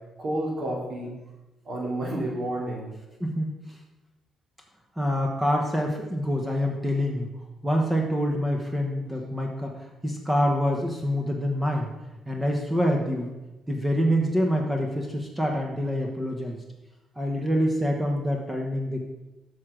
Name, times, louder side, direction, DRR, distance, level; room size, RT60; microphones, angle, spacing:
voice 1, 0.2-1.1 1.6-2.9, right 1 dB, 50° right, -2 dB, 2.8 m, -30 dB
voice 2, 3.2-3.8 5.0-7.3 7.6-11.9 12.3-13.3 13.7-16.6 17.2-19.1, equal, 10° right, 1 dB, 1.1 m, -26 dB
7.0 x 6.2 x 5.0 m, 1.0 s
cardioid pair, 90°, 0 cm